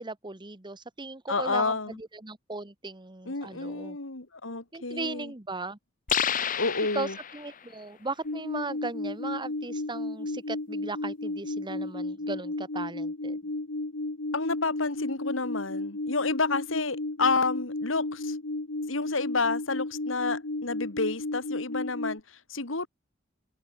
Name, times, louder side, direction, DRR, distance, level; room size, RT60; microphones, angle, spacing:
voice 1, 0.0-4.0 4.7-5.8 6.9-13.4, right 3 dB, 25° right, 1.5 m, -37 dB
voice 2, 1.3-2.0 3.3-5.3 6.6-7.2 14.3-18.4 18.9-22.9, left 3 dB, 90° left, 2.6 m, -30 dB
sound 1, 6.1-7.6, left 8 dB, 45° left, 1.1 m, -30 dB
sound 2, 8.2-22.2, left 2 dB, 70° left, 1.5 m, -33 dB
head